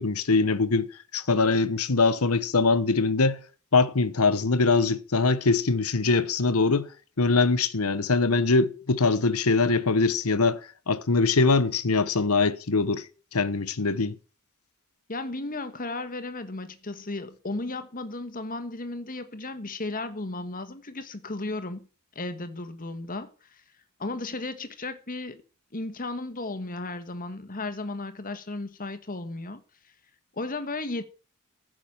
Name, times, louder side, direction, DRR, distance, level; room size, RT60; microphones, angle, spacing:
voice 1, 0.0-3.4 3.7-6.9 7.2-10.6 10.9-13.0 13.3-14.1, left 3 dB, 85° left, 1.1 m, -23 dB
voice 2, 15.1-21.9 22.1-23.3 24.0-25.4 25.7-29.6 30.3-31.0, left 2 dB, 40° left, 1.5 m, -34 dB
14.5 x 6.3 x 8.8 m
head